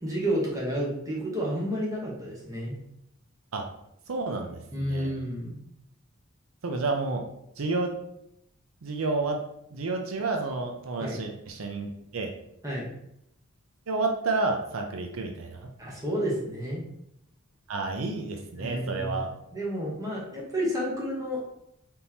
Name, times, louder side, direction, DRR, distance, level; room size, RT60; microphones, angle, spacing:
voice 1, 0.0-2.7 4.7-5.6 11.0-11.2 12.6-12.9 15.8-16.8 18.5-19.3 19.5-21.4, equal, 15° right, -5 dB, 1.1 m, -30 dB
voice 2, 4.1-5.1 6.6-7.2 7.6-7.9 8.8-9.4 9.7-12.3 13.9-15.7 17.7-19.3, right 3 dB, 80° right, 3 dB, 0.6 m, -30 dB
4.1 x 3.6 x 2.8 m, 0.77 s
head